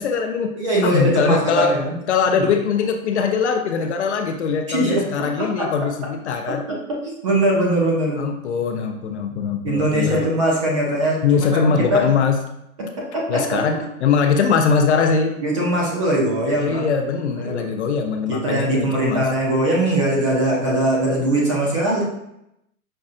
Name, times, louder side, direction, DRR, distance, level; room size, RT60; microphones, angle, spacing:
voice 1, 0.0-0.5 0.8-1.8 2.1-6.6 8.2-10.2 11.2-12.4 13.3-15.4 16.6-19.3, left 5 dB, 55° left, 5 dB, 0.5 m, -21 dB
voice 2, 0.6-1.9 2.4-2.5 4.7-5.1 5.4-5.7 6.5-6.6 6.9-8.2 9.6-11.2 11.5-12.0 13.0-13.6 15.4-16.9 17.3-17.7 18.3-22.0, right 1 dB, 25° right, -3 dB, 0.5 m, -21 dB
5.3 x 2.5 x 2.4 m, 0.81 s
hypercardioid pair, 160°, 41 cm